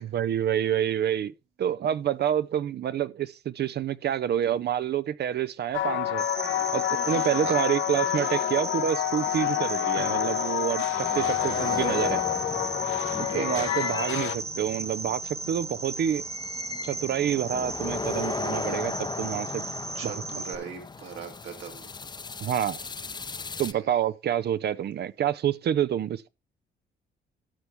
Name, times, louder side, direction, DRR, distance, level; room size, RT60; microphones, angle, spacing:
voice 1, 0.0-1.3 1.6-6.3 6.7-12.2 13.2-16.2 16.8-19.6 20.0-20.1 20.5-20.6 22.4-22.8 23.6-26.3, right 10 dB, 55° right, 0.5 m, -28 dB
sound 1, 5.7-14.4, left 13 dB, 75° left, 1.0 m, -28 dB
Cricket, 6.2-20.6, right 3 dB, 30° right, 1.5 m, -36 dB
sound 2, 10.9-23.7, left 4 dB, 20° left, 0.6 m, -37 dB
voice 2, 11.1-11.4 13.3-13.7 19.9-21.9 23.6-23.9, right 7 dB, 80° right, 3.0 m, -39 dB
12.5 x 6.9 x 3.5 m
cardioid pair, 90°, 20 cm